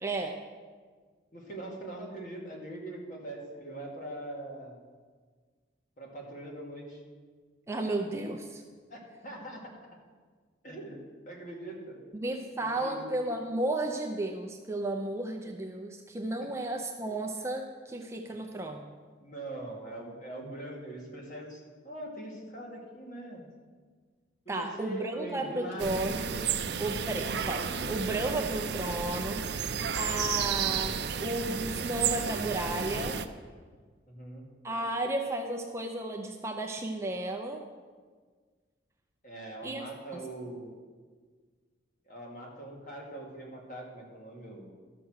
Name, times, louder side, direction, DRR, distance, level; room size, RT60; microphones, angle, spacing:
voice 1, 0.0-0.4 7.7-8.6 12.1-18.8 24.5-26.3 26.8-29.4 29.9-33.2 34.6-37.6 39.6-39.8 40.1-40.2, right 1 dB, 15° right, 3 dB, 0.5 m, -33 dB
voice 2, 1.3-4.8 6.0-7.0 8.9-9.7 10.6-11.0 11.3-12.0 12.8-13.0 19.2-21.6 21.8-23.5 24.5-26.1 34.1-34.5 39.2-40.8 42.1-44.7, right 1 dB, 40° left, -2 dB, 2.1 m, -42 dB
sound 1, 25.8-33.3, right 7 dB, 60° right, 0.5 m, -32 dB
13.0 x 6.1 x 6.4 m, 1.5 s
head